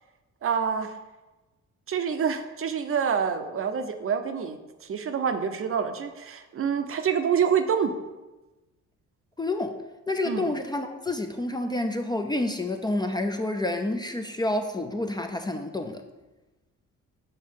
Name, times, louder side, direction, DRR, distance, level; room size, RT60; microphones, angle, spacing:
voice 1, 0.4-0.9 1.9-4.6 4.9-7.9 10.3-10.5, right 7 dB, 45° right, 8 dB, 0.6 m, -26 dB
voice 2, 9.4-9.8 10.1-16.0, left 2 dB, 15° left, 5 dB, 0.5 m, -29 dB
5.5 x 4.3 x 5.2 m, 1.1 s
cardioid pair, 90°, 30 cm